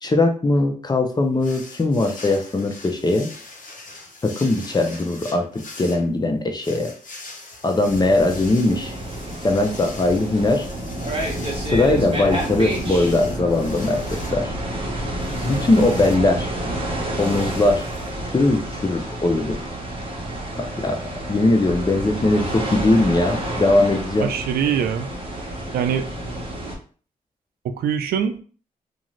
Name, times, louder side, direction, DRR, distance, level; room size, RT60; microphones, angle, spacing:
voice 1, 0.0-3.3 4.2-6.9 7.6-8.9 9.4-10.7 11.6-14.0 14.3-14.5 15.4-16.5 17.2-17.8 18.2-19.6 20.6-21.0 21.3-24.3, left 2 dB, 25° left, 5 dB, 0.6 m, -20 dB
sound 1, 1.4-18.8, left 3 dB, 60° left, 0.9 m, -42 dB
sound 2, 7.8-26.8, right 1 dB, 35° right, 1.1 m, -29 dB
voice 2, 24.2-25.1 25.7-26.1 27.6-28.4, right 8 dB, 90° right, 9 dB, 0.4 m, -23 dB
2.5 x 2.5 x 3.1 m, 0.40 s
cardioid pair, 70°, 15 cm